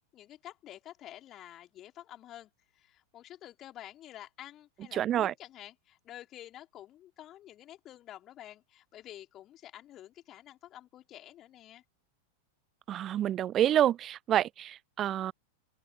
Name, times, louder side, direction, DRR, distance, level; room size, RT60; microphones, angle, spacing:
voice 1, 0.1-11.8, left 13 dB, 30° left, 4.1 m, -49 dB
voice 2, 4.9-5.3 12.9-15.3, right 11 dB, 30° right, 0.4 m, -28 dB
open air
figure-of-eight pair, 90°, 0 cm